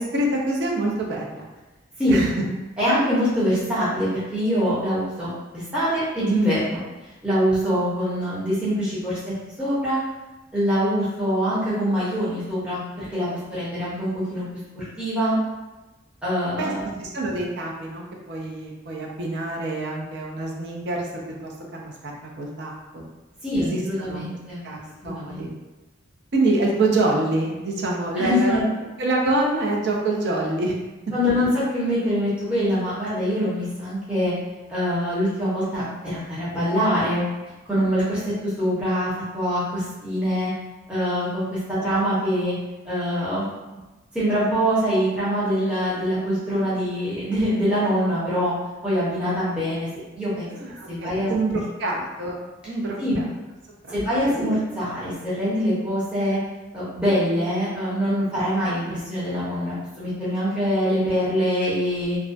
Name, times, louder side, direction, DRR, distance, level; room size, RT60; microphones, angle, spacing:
voice 1, 0.0-1.5 2.1-2.4 16.6-16.7 17.0-23.0 23.6-24.2 24.6-24.8 25.0-25.5 26.3-28.5 29.0-30.7 50.5-52.4 52.6-53.2 54.3-54.6, right 2 dB, 55° right, -2 dB, 0.5 m, -26 dB
voice 2, 2.8-5.3 5.5-6.8 7.2-9.2 9.6-10.0 10.5-14.4 14.8-15.4 16.2-17.0 23.4-24.6 25.0-25.5 28.2-28.6 31.1-34.3 34.7-37.2 37.7-38.2 38.6-40.5 40.9-42.5 42.8-43.4 44.1-48.5 48.8-49.9 50.1-50.4 50.9-51.6 53.0-53.2 53.9-56.4 56.7-62.2, equal, 5° right, -12 dB, 0.6 m, -24 dB
2.3 x 2.1 x 2.4 m, 1.1 s
head